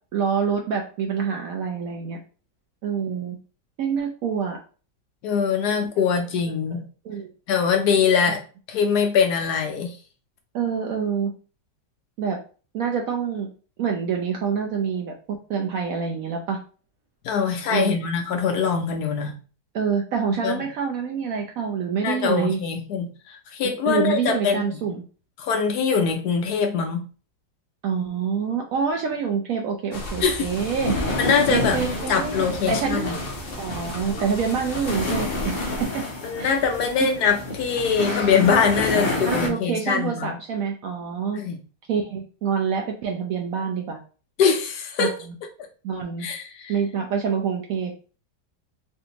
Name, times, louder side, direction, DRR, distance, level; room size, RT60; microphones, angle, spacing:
voice 1, 0.1-2.2 2.8-3.4 3.8-4.6 6.7-6.8 7.1-7.3 10.5-11.3 12.2-12.4 12.7-13.5 13.8-16.6 17.7-18.1 19.7-22.6 23.8-25.0 27.8-30.9 31.5-33.0 33.6-35.5 35.8-36.0 36.4-36.6 37.0-37.1 39.2-41.4 41.9-44.0 45.0-45.3 45.8-46.3 46.7-47.9, right 6 dB, 70° right, 2 dB, 0.8 m, -26 dB
voice 2, 5.2-6.9 7.5-8.4 8.7-10.0 17.2-19.3 20.3-20.6 22.0-24.8 25.4-27.0 30.2-30.5 31.2-31.8 32.1-33.1 36.2-40.4 41.3-41.6 44.4-45.1 46.2-46.7, left 6 dB, 70° left, 4 dB, 1.0 m, -23 dB
sound 1, 29.9-35.9, left 1 dB, 90° left, 0.5 m, -35 dB
sound 2, 30.5-39.5, left 2 dB, 40° left, 0.7 m, -29 dB
3.3 x 2.6 x 2.8 m, 0.37 s
omnidirectional pair, 1.9 m